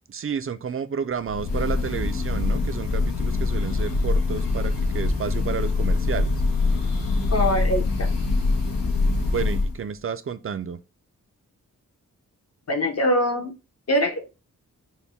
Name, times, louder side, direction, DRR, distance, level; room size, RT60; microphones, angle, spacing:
voice 1, 0.1-6.3 9.3-10.8, right 7 dB, 40° right, 0.4 m, -31 dB
Breathing / Bird, 1.3-9.8, left 3 dB, 80° left, 0.9 m, -24 dB
voice 2, 7.3-8.1 12.7-13.5 13.9-14.3, equal, 45° left, 0.9 m, -23 dB
4.1 x 2.2 x 3.4 m
wide cardioid pair, 85°, 34 cm